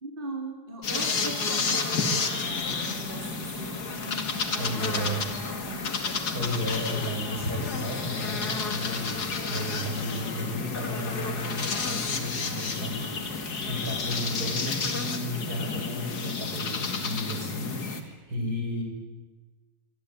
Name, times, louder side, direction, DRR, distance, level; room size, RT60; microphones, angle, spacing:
voice 1, 0.0-5.8 18.4-18.5, right 3 dB, 35° right, 1 dB, 4.1 m, -40 dB
sound 1, 0.8-18.0, left 4 dB, 85° left, 2.9 m, -31 dB
sound 2, 2.3-14.7, right 1 dB, 50° right, 5.0 m, -51 dB
voice 2, 4.6-5.2 6.3-9.2 9.4-18.8, left 1 dB, 75° right, 1 dB, 8.0 m, -33 dB
25.0 x 24.0 x 9.6 m, 1.3 s
omnidirectional pair, 1.7 m